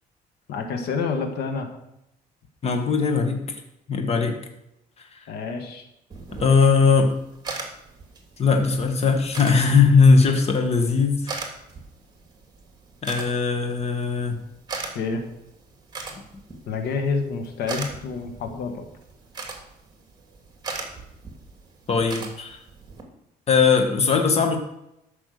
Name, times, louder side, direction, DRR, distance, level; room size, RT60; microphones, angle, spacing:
voice 1, 0.5-1.7 5.3-5.9 14.9-15.2 16.7-18.9, left 4 dB, 75° left, 6 dB, 1.8 m, -28 dB
voice 2, 2.6-3.6 3.9-4.4 5.0-5.2 6.4-7.1 8.4-11.3 13.0-14.4 21.9-22.6 23.5-24.6, left 5 dB, 40° left, 4 dB, 1.7 m, -19 dB
sound 1, 6.1-23.0, right 3 dB, 25° right, 2.9 m, -40 dB
13.0 x 6.0 x 6.7 m, 0.84 s
cardioid pair, 110°, 17 cm